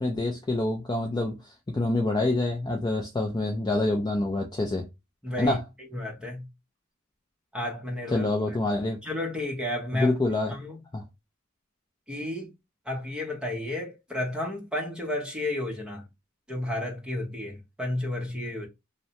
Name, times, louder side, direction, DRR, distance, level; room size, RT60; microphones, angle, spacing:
voice 1, 0.0-1.4 1.7-4.9 5.4-5.6 8.1-9.0 9.9-10.6 10.9-11.0, left 2 dB, 20° left, 0.3 m, -26 dB
voice 2, 5.2-6.5 7.5-8.6 9.0-10.1 10.5-10.8 12.1-12.5 12.9-16.1 16.5-18.7, left 1 dB, 5° right, 0.7 m, -32 dB
2.7 x 2.1 x 2.7 m
head